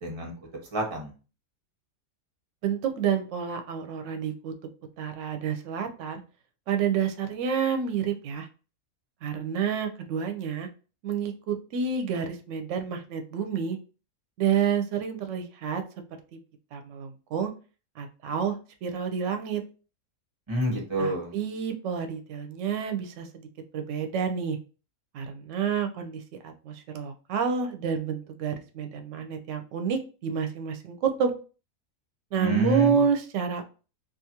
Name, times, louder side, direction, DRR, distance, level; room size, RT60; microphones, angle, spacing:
voice 1, 0.0-0.3 0.7-1.1 20.5-21.3 32.3-33.0, right 1 dB, 25° right, 0 dB, 0.7 m, -28 dB
voice 2, 2.6-4.5 5.0-6.2 6.7-8.5 9.2-10.7 11.0-13.8 14.4-15.8 16.7-17.5 18.0-19.6 21.0-23.5 23.7-24.6 25.1-31.3 32.3-33.6, right 7 dB, 65° right, 6 dB, 0.8 m, -29 dB
2.5 x 2.4 x 2.8 m, 0.35 s
omnidirectional pair, 1.5 m